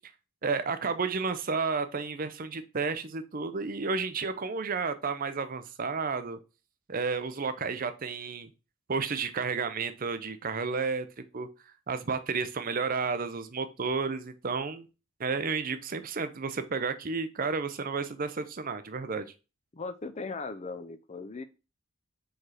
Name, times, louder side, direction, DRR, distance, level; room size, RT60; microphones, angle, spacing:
voice 1, 0.4-6.4 6.9-8.5 8.9-11.1 11.3-11.5 11.9-14.9 15.2-19.3, right 4 dB, 40° right, 11 dB, 0.6 m, -31 dB
voice 2, 19.7-21.4, left 3 dB, 30° left, 11 dB, 0.5 m, -38 dB
4.8 x 4.5 x 4.8 m, 0.31 s
head